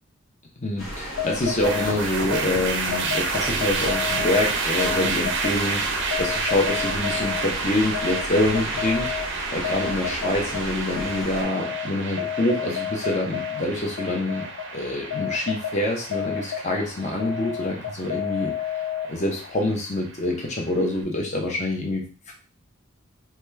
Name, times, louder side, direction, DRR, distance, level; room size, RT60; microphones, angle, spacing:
voice 1, 0.6-14.4 14.7-18.5 19.1-22.3, left 1 dB, 35° left, 0 dB, 0.7 m, -26 dB
sound 1, 0.8-11.4, equal, 75° left, 1.0 m, -35 dB
sound 2, 1.0-19.5, left 9 dB, 60° left, 0.3 m, -32 dB
sound 3, 1.6-20.8, right 4 dB, 60° right, 0.5 m, -31 dB
2.9 x 2.3 x 3.3 m, 0.38 s
head